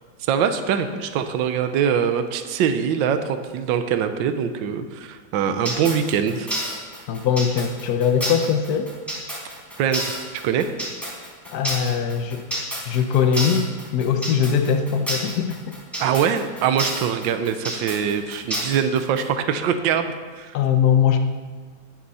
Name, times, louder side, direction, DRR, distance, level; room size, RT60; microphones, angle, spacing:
voice 1, 0.2-6.5 9.8-10.2 10.4-10.7 16.0-20.6, right 7 dB, 75° right, 8 dB, 1.5 m, -23 dB
sound 1, 5.7-19.2, equal, ahead, 4.3 m, -29 dB
voice 2, 7.1-8.9 11.5-12.4 12.9-15.8 20.5-21.2, left 7 dB, 60° left, 7 dB, 1.1 m, -21 dB
19.0 x 9.0 x 4.2 m, 1.5 s
omnidirectional pair, 2.2 m